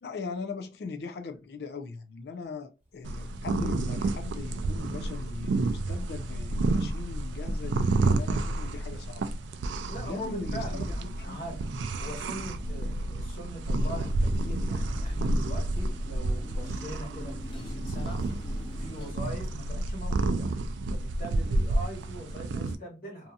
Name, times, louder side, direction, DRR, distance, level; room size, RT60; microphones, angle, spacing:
voice 1, 0.0-9.2 9.9-11.4, left 4 dB, 65° left, 0.4 m, -39 dB
sound 1, 2.8-4.0 4.4-4.8 5.3-5.8 6.2-7.8 8.1-8.6 9.7-10.4 10.8-11.7 12.1-13.3 13.7-16.0, equal, 10° right, 0.8 m, -46 dB
sound 2, 3.0-22.7, right 2 dB, 90° right, 0.3 m, -30 dB
voice 2, 9.9-18.2 18.8-20.5 20.9-23.3, equal, 50° left, 1.3 m, -41 dB
Motorcycle, 13.7-19.1, equal, 30° left, 0.6 m, -46 dB
2.6 x 2.6 x 2.3 m
head